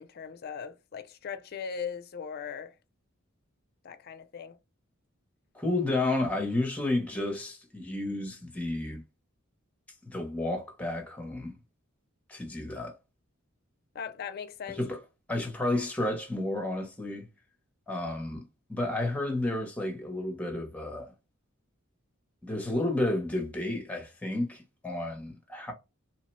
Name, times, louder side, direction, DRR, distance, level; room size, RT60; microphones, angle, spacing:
voice 1, 0.0-2.7 3.8-4.6 13.9-14.8, left 7 dB, 50° left, 0.4 m, -39 dB
voice 2, 5.5-9.0 10.0-11.6 12.3-12.9 14.7-15.0 15.3-17.3 17.9-21.1 22.4-25.7, left 2 dB, 5° left, 0.7 m, -31 dB
3.0 x 2.0 x 3.0 m
head